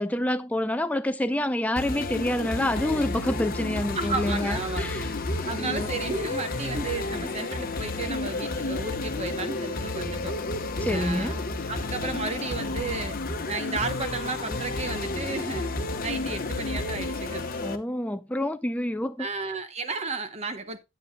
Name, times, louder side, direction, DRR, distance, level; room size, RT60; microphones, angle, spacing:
voice 1, 0.0-5.1 5.4-5.9 10.8-11.3 17.6-19.3, left 1 dB, 5° left, 0.4 m, -28 dB
sound 1, 1.8-17.8, left 2 dB, 45° left, 1.0 m, -31 dB
voice 2, 3.9-4.9 5.4-10.4 10.9-11.4 11.7-13.2 13.5-15.7 16.0-17.5 19.2-20.8, right 3 dB, 30° right, 0.8 m, -33 dB
9.6 x 8.6 x 2.2 m
head